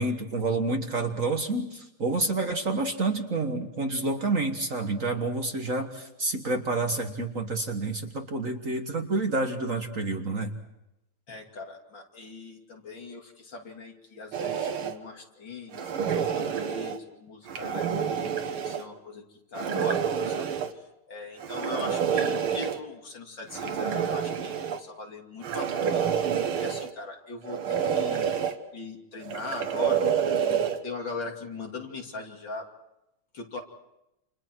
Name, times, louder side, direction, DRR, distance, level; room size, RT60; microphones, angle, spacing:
voice 1, 0.0-10.5, right 3 dB, 40° right, 5 dB, 1.7 m, -29 dB
voice 2, 11.3-19.2 19.5-20.5 21.1-26.1 26.6-28.3 28.7-32.6 33.3-33.6, left 3 dB, 60° left, 2 dB, 3.4 m, -40 dB
sound 1, 14.3-15.0 15.7-17.0 17.5-18.8 19.5-20.7 21.4-22.8 23.5-24.8 25.4-26.9 27.4-28.5 29.2-30.8, right 8 dB, 85° right, 2.2 m, -28 dB
29.5 x 27.5 x 4.6 m, 0.88 s
omnidirectional pair, 2.3 m